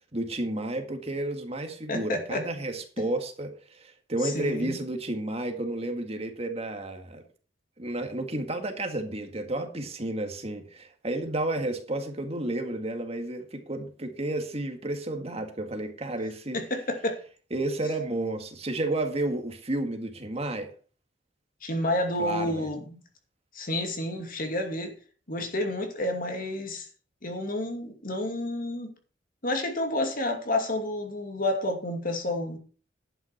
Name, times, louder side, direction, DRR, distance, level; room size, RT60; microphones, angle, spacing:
voice 1, 0.1-7.2 7.8-16.6 17.5-20.7 22.2-22.7, right 2 dB, 35° right, 1.9 m, -31 dB
voice 2, 1.9-2.5 4.2-4.8 16.5-17.2 21.6-23.0 23.5-24.9 25.3-26.9 27.2-28.9 29.4-32.6, left 1 dB, 50° left, 2.5 m, -30 dB
11.0 x 9.3 x 4.5 m
head